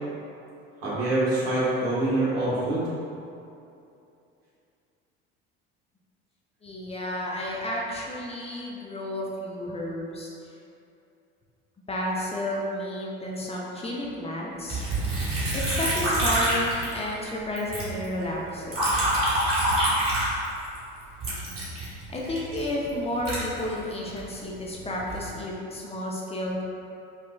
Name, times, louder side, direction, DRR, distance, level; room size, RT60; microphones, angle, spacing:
voice 1, 0.8-2.9, right 2 dB, 85° right, -10 dB, 1.4 m, -25 dB
voice 2, 6.6-10.3 11.9-14.8 15.5-18.9 22.1-26.6, left 1 dB, 20° left, -3 dB, 0.5 m, -31 dB
Liquid, 14.7-17.3 17.6-20.8 21.2-24.2 24.8-25.3, right 1 dB, 45° right, 1.5 m, -26 dB
4.6 x 2.3 x 2.2 m, 2.6 s
supercardioid pair, 80°, 30 cm